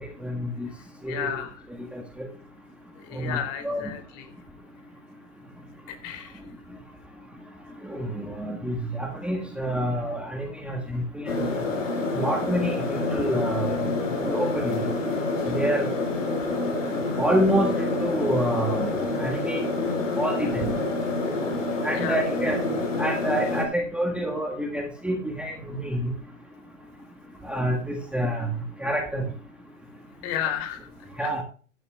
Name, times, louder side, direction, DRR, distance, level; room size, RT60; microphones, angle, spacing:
voice 1, 0.2-0.7 1.0-1.3 1.9-2.0 3.1-3.4 3.6-3.8 7.8-11.7 12.1-12.8 13.1-13.8 14.2-14.9 15.5-15.9 17.2-18.9 19.2-19.6 20.2-20.7 21.8-22.6 23.0-26.1 27.4-28.5 28.8-29.2 31.2-31.4, equal, 5° right, 2 dB, 1.4 m, -27 dB
voice 2, 1.1-1.5 2.9-4.3 5.9-6.4 21.9-22.2 30.2-30.9 31.2-31.4, left 9 dB, 40° left, 6 dB, 2.8 m, -33 dB
sound 1, 11.3-23.6, left 2 dB, 80° left, 5.2 m, -27 dB
15.5 x 11.5 x 2.2 m, 0.40 s
figure-of-eight pair, 110°, 38 cm